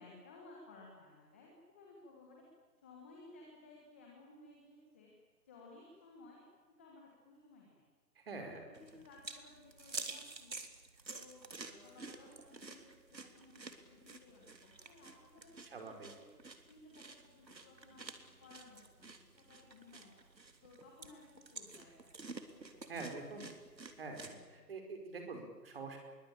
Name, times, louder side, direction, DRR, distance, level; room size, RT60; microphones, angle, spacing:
voice 1, 0.0-2.4 2.8-5.1 5.4-6.4 6.8-7.8 8.6-10.6 11.1-16.3 16.7-18.1 18.4-20.2 20.6-22.1 22.5-23.1, left 3 dB, 5° left, -2 dB, 1.4 m, -58 dB
voice 2, 8.2-8.6 15.7-16.1 22.9-23.5 24.0-26.0, right 3 dB, 35° right, 4 dB, 5.5 m, -45 dB
sound 1, 8.7-24.3, right 3 dB, 90° right, 3.6 m, -50 dB
27.0 x 23.0 x 8.8 m, 1.4 s
figure-of-eight pair, 165°, 50 cm